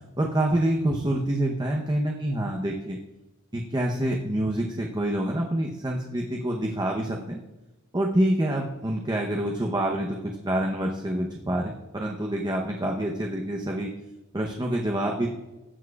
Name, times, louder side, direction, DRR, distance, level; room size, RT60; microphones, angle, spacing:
voice 1, 0.2-3.0 3.5-7.4 7.9-13.9 14.3-15.3, right 1 dB, 20° right, 0 dB, 0.8 m, -27 dB
16.0 x 7.3 x 2.3 m, 1.0 s
head